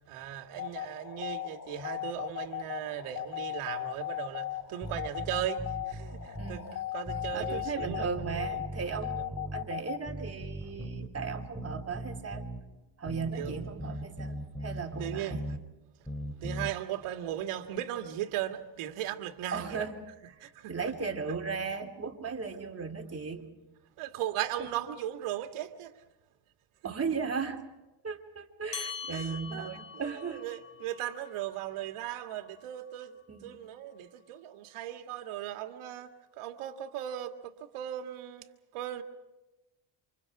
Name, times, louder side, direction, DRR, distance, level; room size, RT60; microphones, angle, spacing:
voice 1, 0.1-6.6 6.9-8.6 13.3-13.6 15.0-15.4 16.3-19.9 20.4-20.7 24.0-25.9 29.1-36.1 36.4-38.4 38.7-39.0, right 11 dB, 80° right, 2.0 m, -37 dB
sound 1, 0.5-10.0, left 13 dB, 35° left, 1.3 m, -38 dB
sound 2, 4.8-6.6 7.1-9.7 10.1-12.6 13.1-15.6 16.1-16.7, equal, 5° left, 3.2 m, -39 dB
voice 2, 7.3-12.4 13.0-15.4 19.5-20.0 20.3-23.5 24.6-24.7 26.8-27.6 28.0-30.4 33.3-33.6, right 5 dB, 30° right, 3.1 m, -36 dB
sound 3, 28.7-33.5, left 7 dB, 55° left, 4.3 m, -45 dB
28.5 x 26.0 x 4.8 m
cardioid pair, 90°, 50 cm